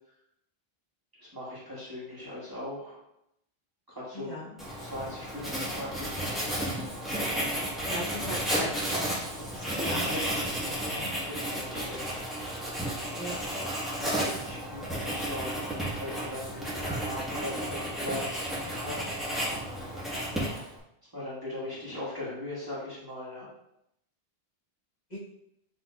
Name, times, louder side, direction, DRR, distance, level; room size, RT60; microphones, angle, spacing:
voice 1, 1.2-3.0 3.9-4.3 4.8-6.7 9.8-10.2 11.3-12.2 13.8-19.7 21.1-23.5, left 1 dB, 20° right, -9 dB, 1.8 m, -40 dB
voice 2, 4.1-4.5 7.9-9.2 9.5-11.1 13.1-13.4 25.1-25.2, equal, 45° left, -8 dB, 1.3 m, -38 dB
Writing, 4.6-20.8, equal, ahead, 1.2 m, -33 dB
6.4 x 3.4 x 2.3 m, 0.80 s
omnidirectional pair, 1.0 m